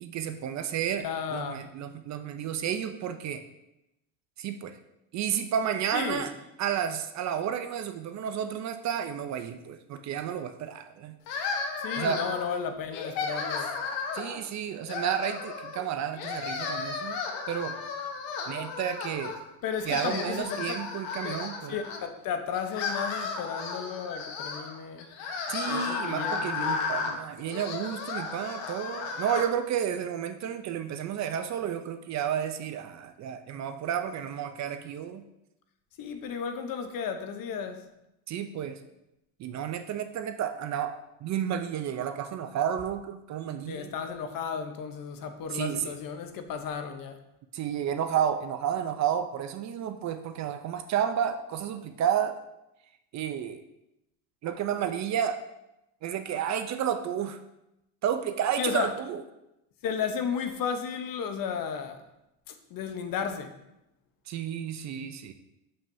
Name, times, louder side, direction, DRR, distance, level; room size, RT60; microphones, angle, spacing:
voice 1, 0.0-1.1 1.3-3.4 4.4-4.8 5.1-6.3 6.6-11.2 11.9-12.2 14.1-17.2 17.5-17.8 18.5-19.4 19.8-21.8 25.5-35.2 38.3-38.8 39.4-43.9 45.5-45.9 47.5-52.4 53.1-53.6 54.4-55.4 56.0-57.4 58.0-59.2 64.3-65.3, right 9 dB, 40° right, 8 dB, 0.4 m, -31 dB
voice 2, 1.0-1.6 5.9-6.2 11.8-13.7 19.6-20.7 21.2-21.4 21.7-25.1 25.7-27.0 36.0-37.9 43.7-47.2 58.6-58.9 59.8-62.0 62.5-63.5, left 6 dB, 45° left, 7 dB, 0.8 m, -34 dB
sound 1, 11.3-12.5 12.9-14.4 14.8-15.8 16.1-19.4 19.7-22.0 22.5-29.5, left 5 dB, 75° left, 1.1 m, -34 dB
7.1 x 5.5 x 2.6 m, 0.88 s
supercardioid pair, 115°, 49 cm